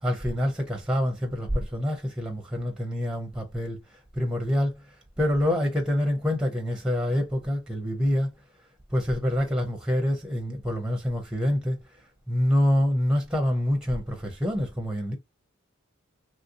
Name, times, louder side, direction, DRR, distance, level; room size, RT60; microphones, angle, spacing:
voice 1, 0.0-8.3 8.9-11.8 12.3-15.1, left 1 dB, 5° right, 0.6 m, -26 dB
3.1 x 2.5 x 2.6 m
head